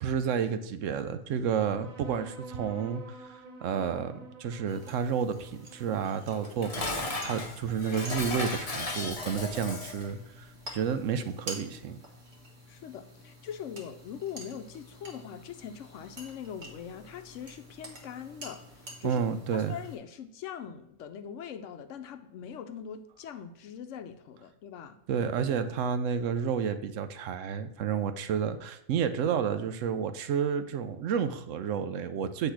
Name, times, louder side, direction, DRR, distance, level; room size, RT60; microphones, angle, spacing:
voice 1, 0.0-3.3 3.6-10.5 10.7-12.0 19.0-19.8 25.1-32.5, right 7 dB, 70° right, 0.9 m, -30 dB
sound 1, 1.6-8.5, right 2 dB, 35° right, 1.0 m, -49 dB
sound 2, 4.7-20.0, right 1 dB, 55° right, 1.6 m, -48 dB
Dishes pots and pans, 6.3-10.1, left 3 dB, 35° left, 0.8 m, -35 dB
voice 2, 12.7-19.2 19.5-25.0, left 8 dB, 70° left, 0.9 m, -42 dB
8.2 x 3.3 x 5.8 m
omnidirectional pair, 1.4 m